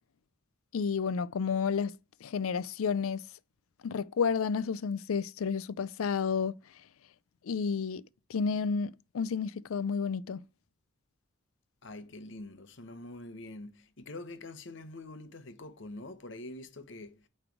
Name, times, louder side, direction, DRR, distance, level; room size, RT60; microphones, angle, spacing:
voice 1, 0.7-1.9 2.2-3.2 3.8-6.5 7.5-8.0 8.3-10.4, left 6 dB, 85° left, 0.4 m, -31 dB
voice 2, 11.8-17.3, left 2 dB, 60° left, 0.8 m, -45 dB
8.8 x 3.2 x 4.6 m
head